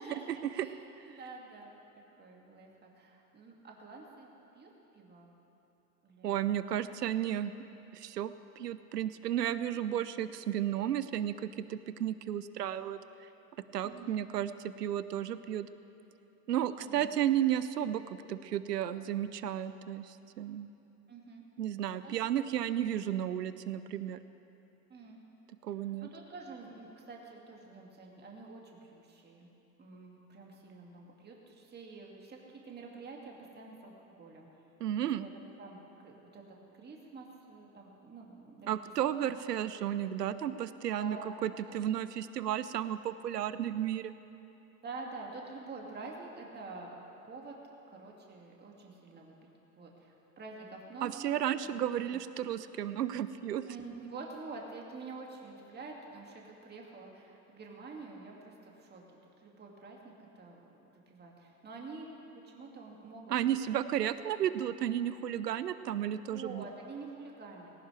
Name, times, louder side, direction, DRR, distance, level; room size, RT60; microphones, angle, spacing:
voice 1, 0.0-1.8 2.2-4.3 4.5-5.3 6.0-6.4 13.8-14.2 16.8-17.2 21.1-21.4 22.0-22.2 24.9-25.2 26.0-29.5 29.8-34.6 35.2-35.3 35.6-36.4 36.7-39.2 41.0-41.3 41.7-42.2 44.8-47.6 47.9-49.4 49.8-51.2 51.5-51.8 52.0-52.2 53.7-59.0 59.4-60.6 61.1-63.3 63.6-63.7 66.3-67.7, right 3 dB, 20° right, -1 dB, 2.4 m, -48 dB
voice 2, 6.2-7.5 7.9-13.0 13.7-15.7 16.5-18.0 18.3-20.7 21.6-24.2 25.6-26.1 34.8-35.3 38.7-41.2 41.4-44.1 51.0-53.6 63.3-66.6, right 11 dB, 85° right, 14 dB, 0.7 m, -33 dB
19.0 x 17.5 x 3.4 m, 2.9 s
hypercardioid pair, 95°, 47 cm